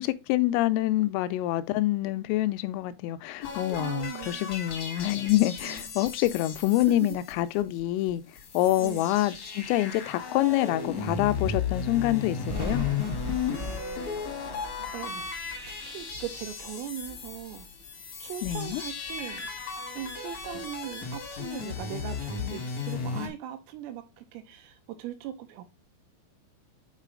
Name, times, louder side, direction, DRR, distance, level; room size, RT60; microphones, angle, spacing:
voice 1, 0.0-8.2 8.5-12.9 18.4-18.8, left 15 dB, 85° left, 3.1 m, -26 dB
sound 1, 3.4-7.8 8.1-8.2 8.3-23.3, left 6 dB, 70° left, 1.7 m, -35 dB
voice 2, 3.8-4.5 5.6-5.9 7.0-7.2 8.8-9.1 14.9-15.3 15.9-17.7 18.2-19.5 20.0-25.7, right 11 dB, 85° right, 3.5 m, -39 dB
Thunder, 12.5-17.9 18.3-19.7 20.0-21.7, left 1 dB, 35° right, 0.8 m, -41 dB
8.2 x 4.1 x 3.7 m
omnidirectional pair, 5.9 m